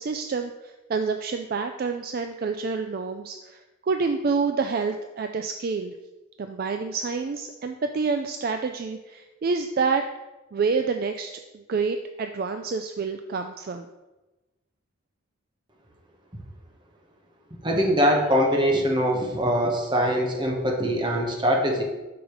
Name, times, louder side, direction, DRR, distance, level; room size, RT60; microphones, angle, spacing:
voice 1, 0.0-5.9 6.4-10.0 10.5-13.9, right 4 dB, 50° right, 6 dB, 0.3 m, -28 dB
voice 2, 17.6-21.8, equal, 25° right, 1 dB, 1.1 m, -22 dB
5.1 x 4.8 x 6.2 m, 1.1 s
head